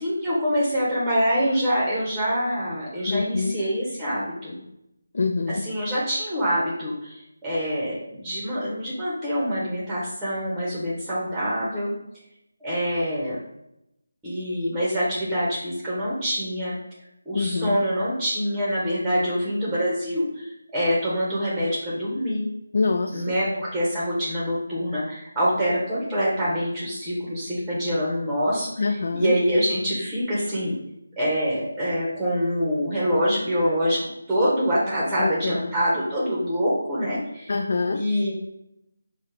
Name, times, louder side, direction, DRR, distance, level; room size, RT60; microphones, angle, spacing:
voice 1, 0.0-4.6 5.5-11.9 12.6-13.4 14.2-16.7 17.3-22.4 23.1-30.7 31.2-34.0 34.3-37.5 37.9-38.3, equal, 5° right, -7 dB, 1.0 m, -25 dB
voice 2, 3.1-3.5 5.1-5.6 17.3-17.8 22.7-23.4 28.8-29.3 35.2-35.7 37.5-38.0, left 4 dB, 55° left, 4 dB, 0.3 m, -25 dB
5.5 x 2.3 x 3.2 m, 0.84 s
figure-of-eight pair, 160°, 0 cm